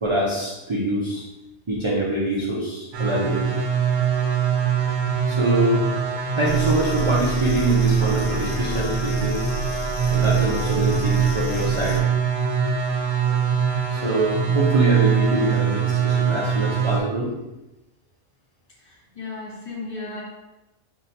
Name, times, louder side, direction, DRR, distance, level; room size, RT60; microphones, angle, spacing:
voice 1, 0.0-1.2 1.7-3.5 5.3-5.8 6.3-9.4 10.1-12.1 13.9-17.3, right 1 dB, 50° right, -5 dB, 0.3 m, -24 dB
sound 1, 2.9-17.0, right 7 dB, 70° right, 1.0 m, -23 dB
sound 2, 6.4-12.0, left 1 dB, 90° left, 1.1 m, -30 dB
voice 2, 18.8-20.2, left 3 dB, 45° left, -5 dB, 1.2 m, -35 dB
5.5 x 2.7 x 2.7 m, 0.98 s
omnidirectional pair, 1.5 m